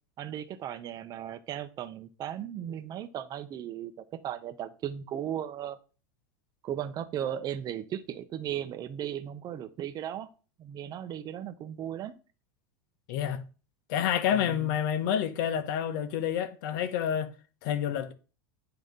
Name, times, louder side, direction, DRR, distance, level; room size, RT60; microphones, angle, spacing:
voice 1, 0.2-3.9 4.2-5.8 6.6-10.3 10.6-12.1 14.3-14.7, right 10 dB, 35° right, 0.7 m, -36 dB
voice 2, 13.1-13.5 13.9-17.3 17.6-18.1, left 9 dB, 65° left, 0.9 m, -28 dB
8.6 x 2.9 x 5.2 m
supercardioid pair, 120°, 11 cm